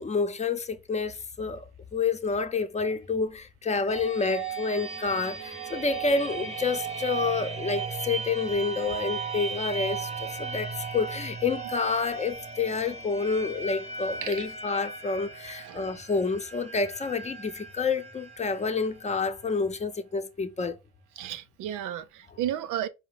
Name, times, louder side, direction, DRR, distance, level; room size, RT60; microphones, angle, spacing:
voice 1, 0.0-20.8, left 4 dB, 20° left, 0.7 m, -29 dB
sound 1, 3.9-19.5, right 5 dB, 20° right, 0.8 m, -37 dB
voice 2, 21.2-22.9, right 11 dB, 85° right, 0.6 m, -33 dB
4.6 x 2.1 x 3.7 m
cardioid pair, 90°, 30 cm